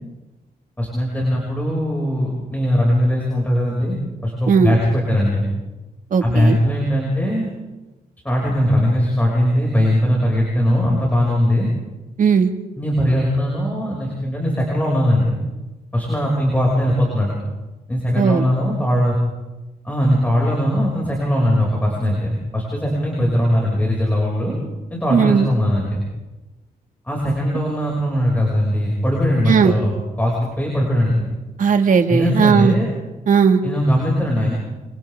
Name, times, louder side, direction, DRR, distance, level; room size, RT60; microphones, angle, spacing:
voice 1, 0.8-5.5 6.2-7.5 8.2-11.7 12.8-15.4 15.9-17.4 17.9-19.2 19.8-24.6 24.9-26.0 27.0-31.2 32.1-32.9 33.6-34.6, equal, 10° left, -3 dB, 6.4 m, -20 dB
voice 2, 6.1-6.6 12.2-12.5 18.2-18.4 25.1-25.5 29.5-29.7 31.6-32.7 33.3-33.6, right 6 dB, 55° right, 5 dB, 2.0 m, -16 dB
28.5 x 25.0 x 3.7 m, 1.1 s
cardioid pair, 110°, 16 cm